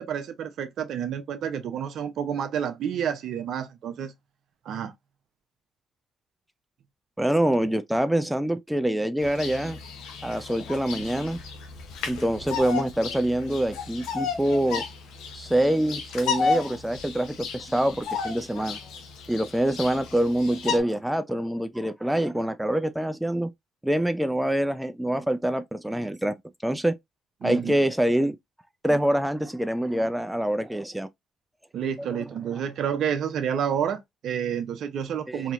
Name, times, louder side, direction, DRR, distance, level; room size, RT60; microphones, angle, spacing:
voice 1, 0.0-4.1 4.6-4.9 27.4-27.8 31.7-35.5, right 8 dB, 70° right, 0.7 m, -29 dB
voice 2, 7.2-9.8 10.2-11.4 12.1-14.8 15.3-18.8 19.3-23.5 23.8-26.3 26.6-26.9 27.4-28.4 28.8-31.1 32.0-32.2 35.3-35.5, right 1 dB, 5° right, 0.5 m, -25 dB
Bird vocalization bird call bird song, 9.2-20.8, left 5 dB, 80° left, 0.9 m, -33 dB
4.1 x 2.9 x 2.5 m
supercardioid pair, 65°, 0 cm